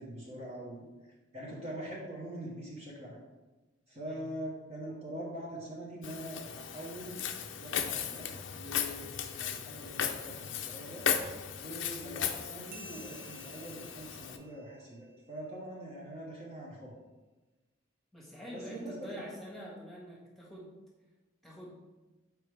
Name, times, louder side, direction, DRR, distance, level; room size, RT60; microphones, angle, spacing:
voice 1, 0.0-3.2 3.9-11.1 11.5-16.9 18.5-19.1, right 1 dB, 30° right, -5 dB, 1.1 m, -43 dB
Walk footsteps, 6.0-14.4, left 8 dB, 65° left, 0.5 m, -36 dB
sound 1, 12.7-15.8, right 2 dB, 50° right, 0.7 m, -54 dB
voice 2, 18.1-20.7 21.4-21.8, equal, ahead, -5 dB, 1.5 m, -46 dB
7.0 x 4.6 x 3.3 m, 1.2 s
head